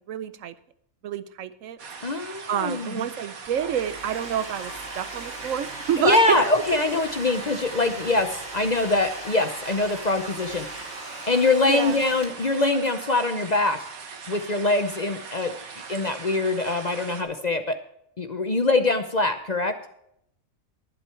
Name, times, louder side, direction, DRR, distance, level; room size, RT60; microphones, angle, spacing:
voice 1, 0.1-0.5 1.0-1.8 2.5-6.2 11.7-12.0, right 9 dB, 70° right, 14 dB, 1.0 m, -28 dB
sound 1, 1.8-17.2, right 5 dB, 85° right, 1.8 m, -40 dB
voice 2, 2.0-3.1 6.0-10.8 11.3-13.8 14.3-15.5 15.9-17.7 18.2-19.7, left 2 dB, 40° left, 8 dB, 0.7 m, -23 dB
Domestic sounds home sounds, 3.4-12.7, right 2 dB, 50° right, 2.8 m, -39 dB
11.5 x 11.0 x 4.4 m, 0.74 s
omnidirectional pair, 1.4 m